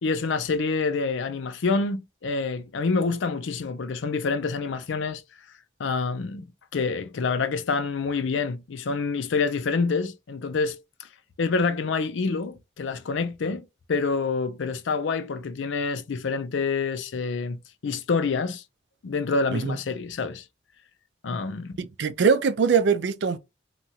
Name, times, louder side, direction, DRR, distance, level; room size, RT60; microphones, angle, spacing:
voice 1, 0.0-5.2 5.8-6.4 6.7-11.1 11.4-18.6 19.0-20.4 21.2-21.8, left 4 dB, 85° left, 0.5 m, -27 dB
voice 2, 21.8-23.4, right 5 dB, 70° right, 0.4 m, -22 dB
2.9 x 2.3 x 2.7 m
head